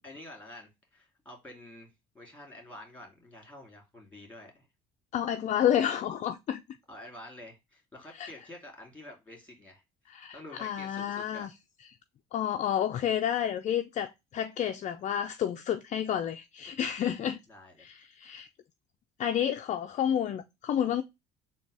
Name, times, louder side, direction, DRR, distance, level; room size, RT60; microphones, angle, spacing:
voice 1, 0.0-4.7 6.9-11.5 17.5-17.9, left 1 dB, 10° left, 2.2 m, -49 dB
voice 2, 5.1-6.6 8.1-8.3 10.1-11.5 12.3-17.4 17.8-18.5 19.2-21.0, left 10 dB, 40° left, 0.4 m, -30 dB
3.9 x 2.3 x 4.6 m
cardioid pair, 105°, 18 cm